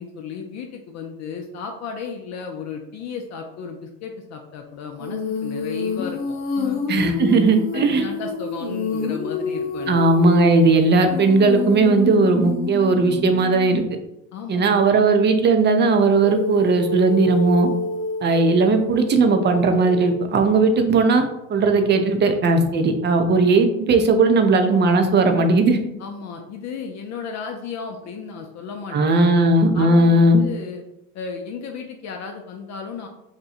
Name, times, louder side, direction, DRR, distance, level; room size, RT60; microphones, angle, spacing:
voice 1, 0.0-6.8 7.7-10.0 14.3-14.7 20.8-20.9 26.0-29.3 29.7-30.8 31.1-33.1, left 6 dB, 45° left, 3 dB, 0.5 m, -34 dB
Female singing, 5.0-13.9 16.1-20.3, left 3 dB, 75° left, 0.8 m, -28 dB
voice 2, 6.9-8.0 9.9-13.8 14.5-17.7 18.2-21.2 21.5-25.8 28.9-30.4, right 3 dB, 30° right, 6 dB, 0.5 m, -17 dB
2.8 x 2.3 x 4.1 m, 0.86 s
hypercardioid pair, 75°, 39 cm